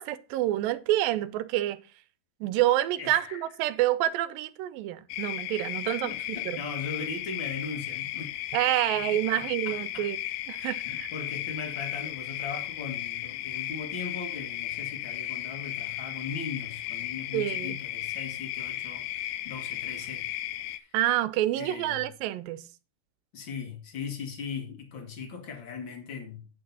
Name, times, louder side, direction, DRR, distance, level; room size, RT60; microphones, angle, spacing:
voice 1, 0.0-1.8 2.4-6.6 8.5-10.2 10.5-11.1 17.3-17.8 20.9-22.6, right 14 dB, 85° right, 2.3 m, -28 dB
voice 2, 3.0-3.5 5.7-8.3 9.1-10.1 10.6-20.3 20.6-20.9 21.6-22.1 23.3-26.5, left 5 dB, 45° left, 1.9 m, -39 dB
sound 1, 5.1-20.8, left 14 dB, 85° left, 2.4 m, -35 dB
8.8 x 8.6 x 4.0 m
omnidirectional pair, 4.1 m